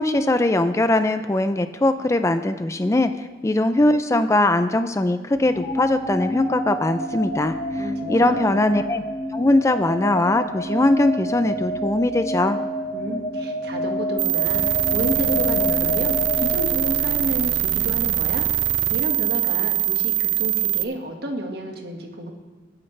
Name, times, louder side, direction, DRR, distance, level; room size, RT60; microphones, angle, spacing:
voice 1, 0.0-3.1 3.4-9.0 9.3-12.6, left 2 dB, 15° left, 10 dB, 0.4 m, -21 dB
sound 1, 5.4-17.5, equal, 80° left, 3.0 m, -28 dB
voice 2, 7.8-8.6 12.9-18.5 18.9-22.3, equal, 60° right, 2 dB, 1.7 m, -31 dB
sound 2, 14.2-20.8, right 13 dB, 85° right, 0.7 m, -22 dB
25.0 x 9.7 x 3.3 m, 1.4 s
head